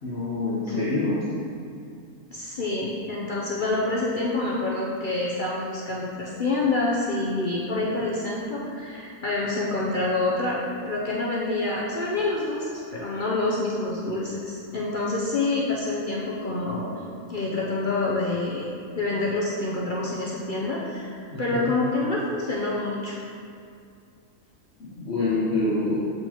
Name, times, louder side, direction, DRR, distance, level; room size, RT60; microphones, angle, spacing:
voice 1, 0.0-1.2 21.3-21.7 24.8-26.0, left 2 dB, 50° left, -9 dB, 1.1 m, -26 dB
voice 2, 2.3-10.6 10.9-17.0 17.3-18.7 18.9-23.2, left 2 dB, 65° left, -5 dB, 0.5 m, -27 dB
7.9 x 4.4 x 2.9 m, 2.4 s
omnidirectional pair, 1.6 m